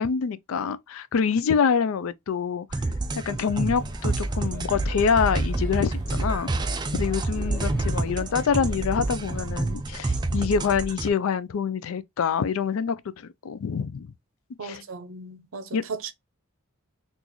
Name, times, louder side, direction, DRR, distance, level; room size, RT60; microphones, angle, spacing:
voice 1, 0.0-2.7 3.1-6.5 6.9-14.1 14.6-14.8 15.7-15.8, left 6 dB, 65° left, 0.4 m, -26 dB
sound 1, 2.7-11.1, right 2 dB, 20° right, 0.3 m, -28 dB
Male speech man speaking / Child speech kid speaking / Chatter, 3.7-9.4, equal, 15° left, 1.5 m, -39 dB
voice 2, 14.6-16.1, right 4 dB, 60° right, 0.6 m, -36 dB
3.8 x 2.4 x 2.9 m
head